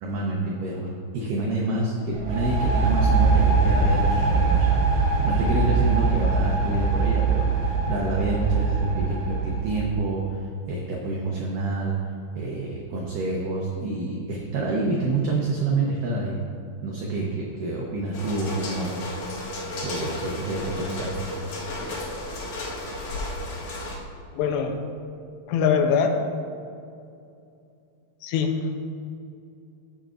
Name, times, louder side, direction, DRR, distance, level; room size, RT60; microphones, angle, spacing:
voice 1, 0.0-0.9 1.1-12.0 12.4-16.4 16.8-18.9 19.8-21.2, right 2 dB, 80° right, -2 dB, 1.9 m, -27 dB
sound 1, 2.1-9.9, right 4 dB, 65° right, 2.6 m, -22 dB
sound 2, 18.1-23.9, left 1 dB, 55° left, 2.3 m, -33 dB
voice 2, 24.3-24.8 25.5-26.2 28.2-28.8, left 6 dB, 85° left, 4 dB, 2.7 m, -23 dB
15.5 x 7.2 x 2.5 m, 2.5 s
omnidirectional pair, 5.1 m